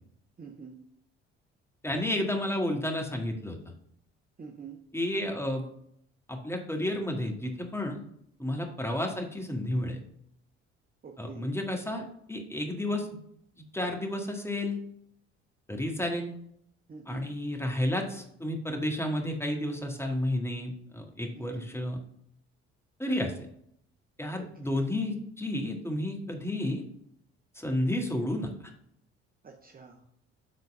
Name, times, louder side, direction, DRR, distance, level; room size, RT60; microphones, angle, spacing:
voice 1, 0.4-0.8 4.4-4.8 11.0-11.5 16.9-17.3 21.4-21.7 24.4-24.5 29.4-30.0, right 6 dB, 25° right, 2 dB, 0.9 m, -46 dB
voice 2, 1.8-3.6 4.9-5.6 6.3-8.0 8.4-10.0 11.2-13.1 13.6-14.8 15.7-16.3 17.1-22.0 23.0-23.3 24.2-26.8 27.6-28.5, left 1 dB, 5° left, 2 dB, 1.7 m, -31 dB
7.7 x 3.9 x 5.4 m, 0.70 s
figure-of-eight pair, 50°, 34 cm